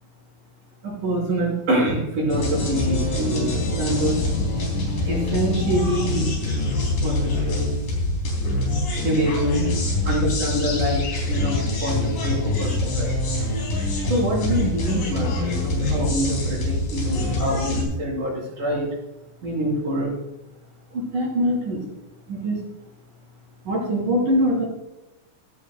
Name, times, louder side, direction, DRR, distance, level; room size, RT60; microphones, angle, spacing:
voice 1, 0.8-4.2 5.0-6.6 7.0-7.7 9.0-9.6 10.0-13.1 14.1-18.9 19.4-20.2 20.9-21.8 22.3-22.6 23.6-24.7, right 1 dB, 85° right, -9 dB, 6.2 m, -25 dB
sound 1, 2.3-17.8, left 2 dB, 85° left, 5.2 m, -24 dB
15.0 x 14.5 x 2.3 m, 0.94 s
omnidirectional pair, 3.6 m